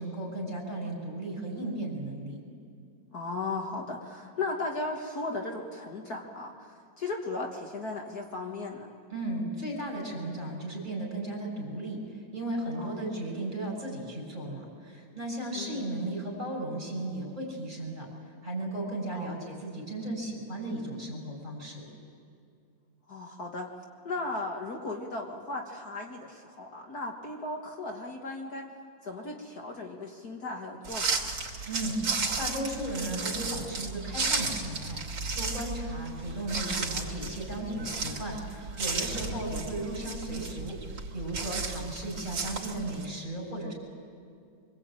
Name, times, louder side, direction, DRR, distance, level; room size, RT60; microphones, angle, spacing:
voice 1, 0.0-2.4 9.1-12.0 12.3-18.1 18.4-21.8 31.7-35.0 35.3-40.8 41.1-43.7, right 1 dB, 25° right, -2 dB, 7.1 m, -35 dB
voice 2, 3.1-6.5 7.0-8.9 12.8-13.2 15.6-15.8 19.1-19.5 23.1-23.7 24.0-28.7 29.0-31.3 36.6-36.9 39.1-39.4, left 3 dB, 55° left, 1 dB, 2.1 m, -36 dB
sound 1, 30.8-43.1, right 4 dB, 90° right, 3.3 m, -34 dB
25.0 x 23.5 x 9.0 m, 2.3 s
omnidirectional pair, 2.0 m